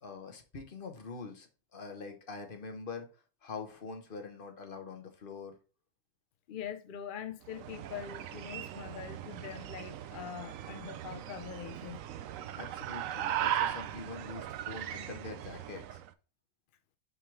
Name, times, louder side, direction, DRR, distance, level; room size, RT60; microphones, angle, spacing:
voice 1, 0.0-5.6 12.5-16.0, left 4 dB, 40° left, 1.1 m, -44 dB
voice 2, 6.5-12.0, left 9 dB, 80° left, 0.4 m, -43 dB
sound 1, 7.4-16.1, right 11 dB, 70° right, 0.9 m, -38 dB
6.0 x 3.7 x 4.5 m
omnidirectional pair, 1.6 m